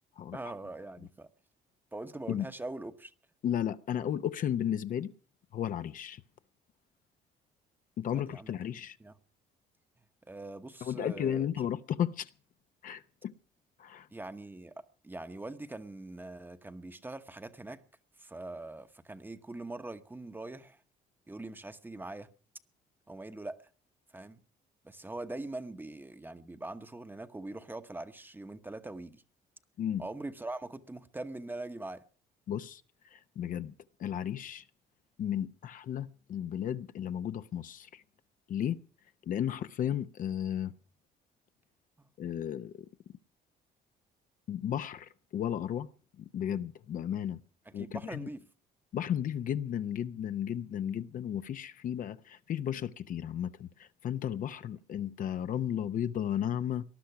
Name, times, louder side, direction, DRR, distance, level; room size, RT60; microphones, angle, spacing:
voice 1, 0.3-1.3 1.9-3.1 8.1-8.6 9.0-9.1 10.3-11.4 14.1-17.8 18.2-20.8 21.3-22.3 23.1-23.7 24.1-24.4 24.8-29.2 30.0-32.0 42.0-42.1 47.6-48.5, right 2 dB, 10° right, 1.0 m, -42 dB
voice 2, 3.4-5.1 5.5-6.2 8.0-9.0 10.8-12.3 12.8-13.3 13.8-14.1 29.8-30.0 32.5-32.8 33.1-33.7 34.0-34.6 35.2-38.0 38.5-38.8 39.3-40.7 42.2-42.7 44.5-45.9 46.2-47.4 47.7-48.3 48.9-56.8, left 10 dB, 50° left, 0.7 m, -34 dB
19.5 x 11.5 x 5.8 m
cardioid pair, 110°, 17 cm